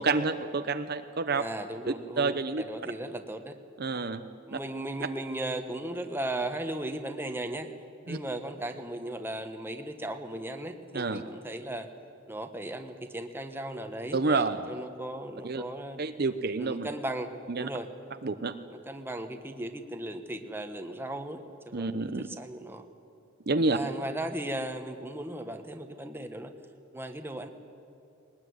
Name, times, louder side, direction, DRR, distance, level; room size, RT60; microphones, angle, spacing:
voice 1, 0.0-1.4 1.9-2.6 3.8-4.2 4.5-4.6 8.1-8.2 10.9-11.2 14.1-14.7 15.4-15.6 16.0-16.9 17.5-17.7 18.2-18.5 21.7-22.3 23.5-23.8, right 3 dB, 50° right, 9 dB, 0.8 m, -29 dB
voice 2, 1.4-3.6 4.5-7.7 8.1-11.9 12.3-16.0 16.6-17.3 17.6-17.9 18.7-22.9 23.7-26.5 26.9-27.5, right 1 dB, 10° right, 6 dB, 1.3 m, -37 dB
21.0 x 19.5 x 9.6 m, 2.7 s
head